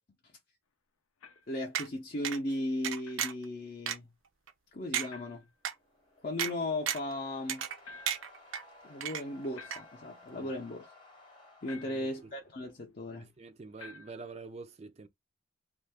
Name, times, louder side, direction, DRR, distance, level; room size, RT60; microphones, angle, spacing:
sound 1, 1.2-1.6 3.0-3.3 5.1-5.5 7.8-8.4 9.6-10.2 11.7-12.2 13.8-14.3, left 4 dB, 85° left, 0.6 m, -51 dB
voice 1, 1.5-4.1 4.7-5.5 6.2-7.6 8.8-10.9 11.6-13.3, left 1 dB, 45° left, 0.6 m, -36 dB
sound 2, 1.7-1.9 2.2-2.4 2.8-3.4 3.9-4.0 4.5-4.6 4.9-5.1 5.6-5.7 6.4-6.5 6.9-7.1 7.5-7.8 8.1-8.6 9.0-9.5 9.7-9.8, right 9 dB, 80° right, 0.6 m, -33 dB
sound 3, 5.6-12.7, left 2 dB, 25° left, 0.9 m, -57 dB
voice 2, 11.8-12.4 13.1-15.1, right 4 dB, 30° right, 0.4 m, -47 dB
2.7 x 2.5 x 3.4 m
head